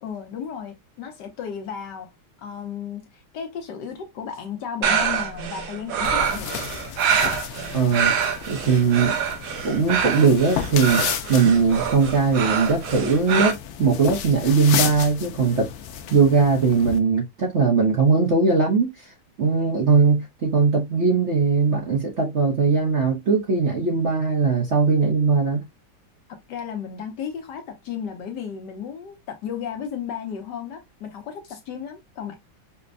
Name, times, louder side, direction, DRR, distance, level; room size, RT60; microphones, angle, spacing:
voice 1, 0.0-2.1 2.4-6.7 26.5-32.3, left 7 dB, 70° left, 1.2 m, -34 dB
sound 1, 4.8-13.5, right 7 dB, 80° right, 1.5 m, -25 dB
sound 2, 6.0-17.0, left 9 dB, 85° left, 0.8 m, -32 dB
voice 2, 7.7-8.1 8.5-9.2 9.6-11.0 11.3-15.7 16.1-19.1 19.4-25.6, right 5 dB, 50° right, 0.9 m, -20 dB
5.1 x 2.1 x 2.5 m
omnidirectional pair, 2.2 m